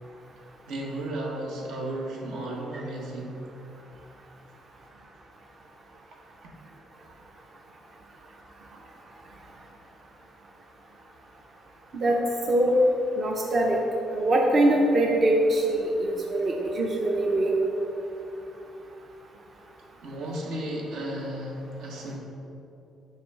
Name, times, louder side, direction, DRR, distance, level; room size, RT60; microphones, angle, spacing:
voice 1, 0.7-3.4 20.0-22.2, right 1 dB, 80° right, -1 dB, 1.2 m, -34 dB
voice 2, 12.5-12.8 13.2-13.8 14.1-17.5, right 1 dB, 30° right, 0 dB, 0.5 m, -23 dB
5.5 x 4.6 x 5.5 m, 2.9 s
cardioid pair, 180°, 0 cm